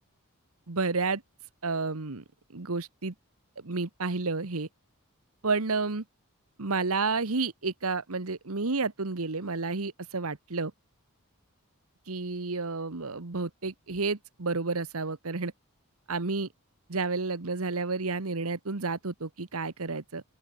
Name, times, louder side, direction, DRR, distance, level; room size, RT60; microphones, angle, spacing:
voice 1, 0.7-1.2 1.6-2.2 2.5-3.1 3.6-4.7 5.4-6.0 6.6-10.7 12.1-15.5 16.1-16.5 16.9-20.2, right 4 dB, 75° right, 1.3 m, -31 dB
open air
head